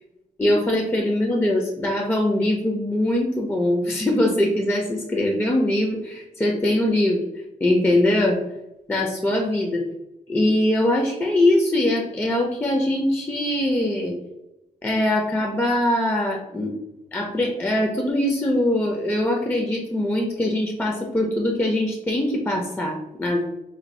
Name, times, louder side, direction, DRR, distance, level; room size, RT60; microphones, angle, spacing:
voice 1, 0.4-7.2 7.6-8.4 8.9-9.8 10.3-14.2 14.8-16.7 17.1-23.4, left 1 dB, 10° left, 1 dB, 0.4 m, -22 dB
2.6 x 2.5 x 4.1 m, 0.93 s
wide cardioid pair, 130°, 16 cm